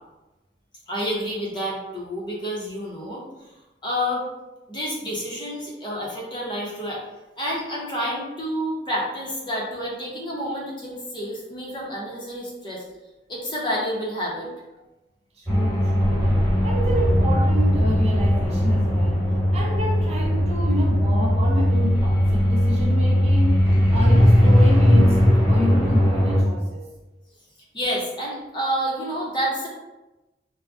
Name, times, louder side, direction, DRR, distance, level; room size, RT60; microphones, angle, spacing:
voice 1, 0.9-3.2 3.8-4.2 4.7-7.0 7.4-12.8 13.3-14.5 27.7-29.7, equal, 25° left, -4 dB, 0.7 m, -29 dB
voice 2, 15.4-19.3 19.5-23.6 23.9-26.9, left 1 dB, 35° right, -2 dB, 0.5 m, -29 dB
sound 1, 15.5-26.4, equal, 10° right, 1.2 m, -18 dB
3.5 x 2.1 x 2.4 m, 1.0 s
head